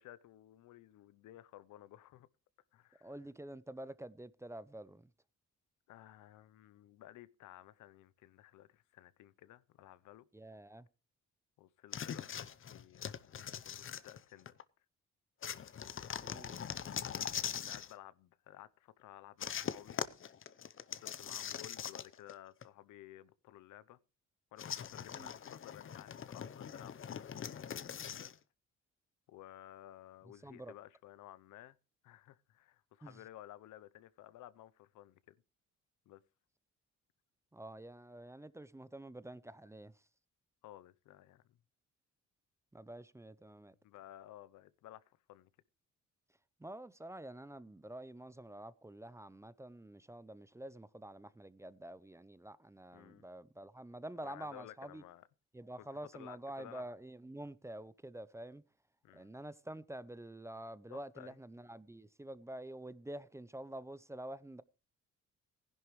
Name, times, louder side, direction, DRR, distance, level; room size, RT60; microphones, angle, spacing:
voice 1, 0.0-2.3 2.7-3.1 5.9-10.3 11.6-14.6 17.6-20.0 21.0-24.0 24.5-28.4 29.3-31.8 32.0-35.4 36.1-36.2 40.6-41.4 43.8-45.5 52.9-53.2 54.2-55.3 55.8-55.9 56.1-56.8 59.0-59.3 60.9-61.3, left 13 dB, 80° left, 0.8 m, -55 dB
voice 2, 3.0-5.1 10.3-10.9 16.2-16.6 25.1-25.3 30.4-30.7 33.0-33.2 37.5-39.9 42.7-43.7 46.6-55.0 55.5-58.6 59.1-64.6, right 1 dB, 10° right, 0.6 m, -48 dB
sound 1, 11.9-14.6 15.4-17.9 19.4-22.3 22.6-22.7 24.6-28.3, left 8 dB, 45° left, 0.8 m, -42 dB
15.5 x 11.0 x 3.1 m
cardioid pair, 90°, 30 cm